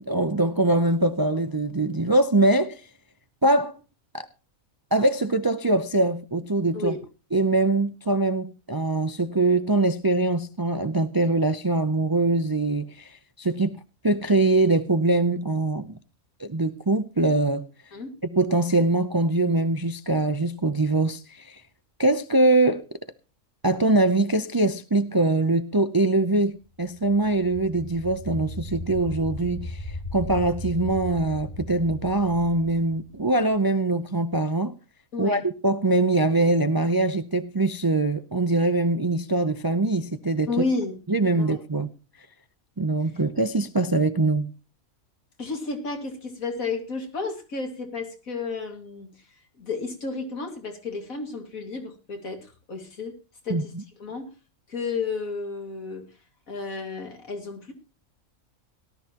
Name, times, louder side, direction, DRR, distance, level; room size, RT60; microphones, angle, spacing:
voice 1, 0.0-2.8 3.4-3.8 4.1-4.3 4.9-7.0 7.3-15.9 16.4-17.7 18.2-21.6 22.0-22.8 23.6-34.7 35.2-40.5 41.1-41.9 42.8-44.5 53.5-53.8, right 2 dB, 30° right, 0.4 m, -23 dB
sound 1, 26.8-33.6, left 1 dB, 35° left, 2.8 m, -37 dB
voice 2, 35.1-35.4 40.5-41.0 41.4-41.6 45.4-49.1 49.6-53.2 53.4-53.7 54.0-54.3 54.7-56.1 56.5-57.7, left 4 dB, 85° left, 2.7 m, -32 dB
18.0 x 12.5 x 2.9 m
omnidirectional pair, 1.4 m